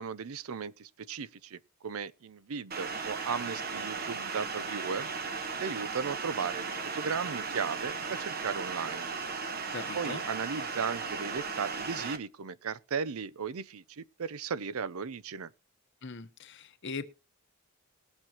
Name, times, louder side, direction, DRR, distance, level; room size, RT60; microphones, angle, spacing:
voice 1, 0.0-5.1 5.6-9.2 9.9-15.5, right 6 dB, 80° right, 0.6 m, -36 dB
sound 1, 2.7-12.2, right 5 dB, 45° right, 1.1 m, -36 dB
voice 2, 9.7-10.2 16.0-17.1, left 4 dB, 55° left, 0.9 m, -40 dB
20.5 x 7.3 x 2.9 m
head